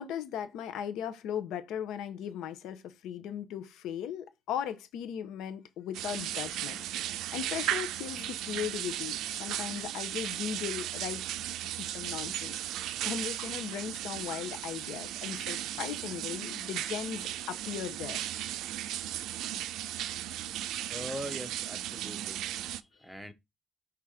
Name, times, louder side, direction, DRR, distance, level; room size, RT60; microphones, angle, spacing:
voice 1, 0.0-6.8 7.3-11.2 11.6-12.6 13.0-18.2, left 9 dB, 80° left, 0.8 m, -37 dB
sound 1, 5.9-22.8, right 12 dB, 85° right, 0.4 m, -36 dB
voice 2, 20.9-22.4 23.0-23.3, equal, ahead, 0.6 m, -41 dB
5.8 x 3.6 x 4.9 m
cardioid pair, 170°, 0 cm